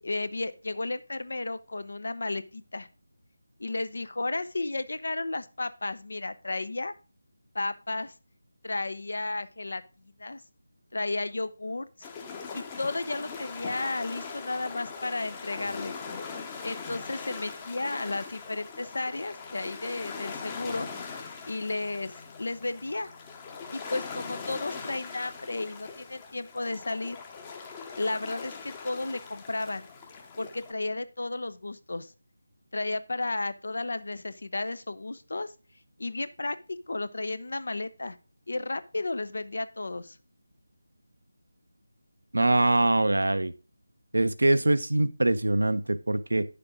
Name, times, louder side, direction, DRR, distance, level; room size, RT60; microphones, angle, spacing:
voice 1, 0.0-2.9 3.6-6.9 7.5-8.1 8.6-10.4 10.9-12.1 12.5-16.0 16.6-20.9 21.5-23.1 23.7-27.2 28.0-29.9 30.4-32.1 32.7-35.5 36.0-38.2 38.5-40.2, left 2 dB, 55° left, 14 dB, 0.7 m, -33 dB
sound 1, 12.0-30.7, left 5 dB, 15° left, 0.9 m, -41 dB
voice 2, 42.3-43.5 44.1-46.5, right 2 dB, 65° right, 12 dB, 0.7 m, -23 dB
9.6 x 6.8 x 3.7 m, 0.33 s
figure-of-eight pair, 160°, 0 cm